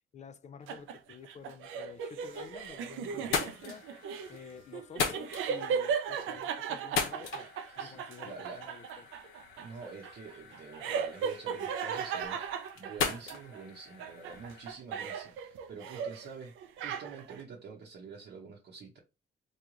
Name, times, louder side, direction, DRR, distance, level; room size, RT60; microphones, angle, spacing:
voice 1, 0.1-3.8 4.3-9.1, left 6 dB, 35° left, 0.4 m, -50 dB
sound 1, 0.7-13.6 14.0-16.3 16.6-17.4, right 7 dB, 85° right, 0.5 m, -37 dB
sound 2, 2.3-2.8 3.1-14.7, left 5 dB, 85° left, 0.7 m, -39 dB
voice 2, 7.8-8.6 9.6-19.0, right 5 dB, 60° right, 0.8 m, -47 dB
3.1 x 2.3 x 3.7 m
cardioid pair, 90°, 20 cm